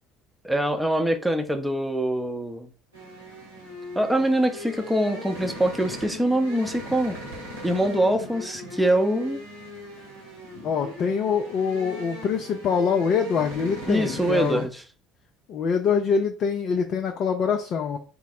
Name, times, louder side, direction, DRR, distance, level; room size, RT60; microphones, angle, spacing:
voice 1, 0.4-2.7 4.0-7.2 7.6-9.4 13.9-14.8, right 1 dB, 5° right, 0.7 m, -24 dB
sound 1, 2.9-14.7, left 1 dB, 85° right, 1.2 m, -39 dB
voice 2, 10.6-14.7 15.5-18.0, left 6 dB, 45° left, 0.4 m, -24 dB
3.8 x 2.1 x 4.3 m
figure-of-eight pair, 60°, 0 cm